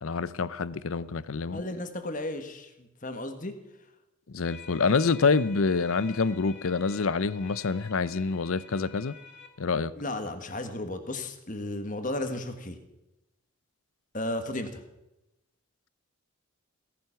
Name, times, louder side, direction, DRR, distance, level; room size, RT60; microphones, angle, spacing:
voice 1, 0.0-1.6 4.3-9.2 9.6-9.9, left 4 dB, 75° left, 18 dB, 0.6 m, -27 dB
voice 2, 1.5-3.6 10.0-12.8 14.1-14.8, left 1 dB, 35° left, 8 dB, 1.6 m, -34 dB
sound 1, 4.4-9.5, left 5 dB, 55° left, 2.7 m, -48 dB
17.0 x 11.0 x 5.9 m, 0.93 s
head